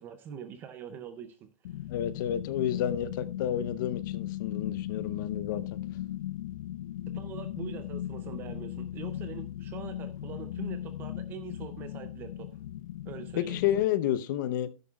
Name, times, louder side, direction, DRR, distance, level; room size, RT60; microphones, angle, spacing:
voice 1, 0.0-1.8 7.1-12.5 13.0-13.6, right 9 dB, 10° right, 0.4 m, -43 dB
sound 1, 1.6-13.8, left 12 dB, 85° left, 0.5 m, -37 dB
voice 2, 1.9-5.8 13.4-14.7, left 11 dB, 35° left, 0.7 m, -30 dB
12.5 x 10.5 x 2.3 m
supercardioid pair, 180°, 18 cm